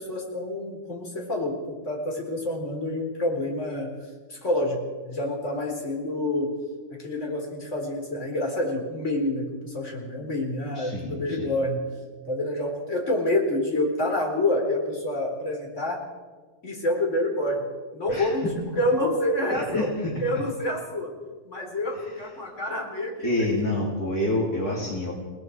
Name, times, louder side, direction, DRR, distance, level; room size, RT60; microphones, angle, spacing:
voice 1, 0.0-4.0 4.3-6.5 6.9-12.0 12.3-16.0 16.6-17.7 17.9-19.9 20.2-21.1 21.4-23.5, left 1 dB, 45° left, -1 dB, 4.4 m, -28 dB
voice 2, 10.8-11.5 18.1-18.3 19.5-20.1 23.2-25.1, left 1 dB, 60° left, -3 dB, 3.5 m, -27 dB
30.0 x 19.5 x 4.7 m, 1.4 s
omnidirectional pair, 1.8 m